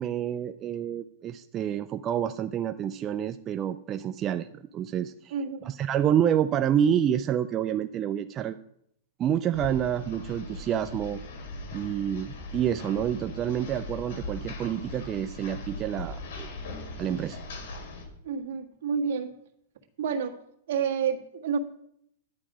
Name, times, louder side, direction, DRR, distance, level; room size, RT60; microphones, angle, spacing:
voice 1, 0.0-5.3 5.6-8.6 9.2-11.2 11.7-16.5 17.0-17.4, right 9 dB, 20° right, 9 dB, 0.4 m, -28 dB
voice 2, 5.3-5.7 18.2-19.3 20.0-20.3 20.7-21.6, right 6 dB, 60° right, 2 dB, 1.7 m, -29 dB
library cut, 9.5-18.0, left 2 dB, 65° left, 3.2 m, -39 dB
11.5 x 8.5 x 5.0 m, 0.74 s
supercardioid pair, 160°, 0 cm